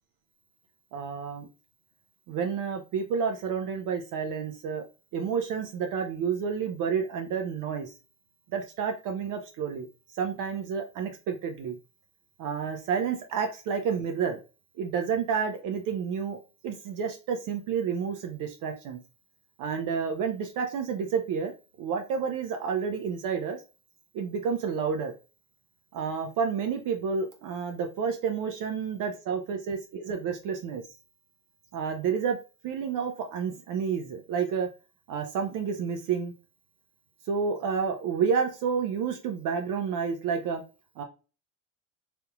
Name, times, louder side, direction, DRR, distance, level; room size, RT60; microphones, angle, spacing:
voice 1, 0.9-1.5 2.3-4.9 5.1-7.9 8.5-9.9 10.2-11.8 12.4-14.4 14.8-16.4 16.6-19.0 19.6-21.5 21.8-23.6 24.1-25.1 25.9-30.8 31.7-32.4 32.6-34.7 35.1-36.3 37.3-40.6 41.0-41.1, right 6 dB, 50° right, 4 dB, 0.8 m, -30 dB
3.5 x 2.7 x 2.3 m, 0.32 s
hypercardioid pair, 85°, 41 cm